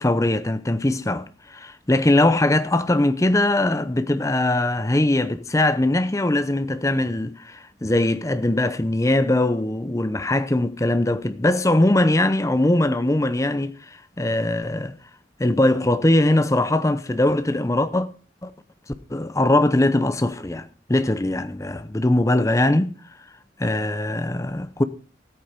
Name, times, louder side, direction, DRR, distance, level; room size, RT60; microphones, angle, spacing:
voice 1, 0.0-13.8 14.2-15.0 15.4-18.1 18.4-18.5 19.1-22.9 23.6-24.8, left 1 dB, 15° left, 0.7 m, -21 dB
14.0 x 8.9 x 5.1 m
head